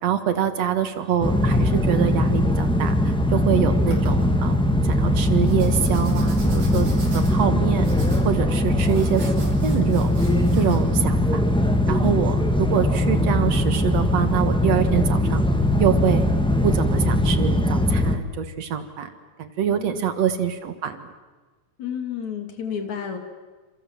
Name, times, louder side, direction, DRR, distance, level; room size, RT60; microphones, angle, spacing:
voice 1, 0.0-4.6 4.8-6.9 7.1-7.9 8.2-10.1 10.5-11.4 11.9-15.4 15.8-16.3 16.6-19.1 19.4-21.1, right 8 dB, 65° right, 10 dB, 2.6 m, -25 dB
sound 1, 1.2-18.2, left 1 dB, 5° left, 1.0 m, -20 dB
sound 2, 3.2-3.4 3.9-4.3 5.4-10.8, right 3 dB, 85° right, 7.1 m, -43 dB
voice 2, 11.9-12.4 19.7-20.2 21.8-23.2, left 8 dB, 70° left, 6 dB, 4.0 m, -32 dB
29.0 x 27.0 x 7.6 m, 1.3 s
omnidirectional pair, 3.4 m